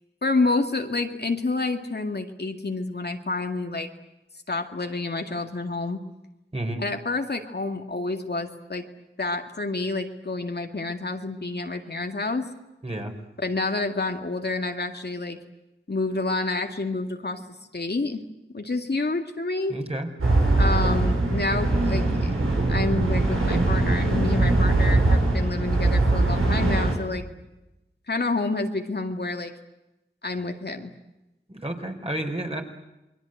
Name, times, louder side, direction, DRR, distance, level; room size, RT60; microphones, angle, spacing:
voice 1, 0.2-3.9 4.5-6.0 6.8-8.8 9.2-12.5 13.4-15.4 15.9-17.4 17.7-18.2 18.5-19.8 20.6-22.3 22.6-27.2 28.1-29.5 30.2-30.9, left 3 dB, 50° left, 4 dB, 2.1 m, -28 dB
voice 2, 6.5-6.8 12.8-13.1 19.7-20.1 31.5-32.6, right 1 dB, 30° right, 3 dB, 4.3 m, -30 dB
sound 1, 20.2-26.9, right 2 dB, 90° right, 5.8 m, -21 dB
28.5 x 21.5 x 7.9 m, 0.96 s
wide cardioid pair, 50°, 21 cm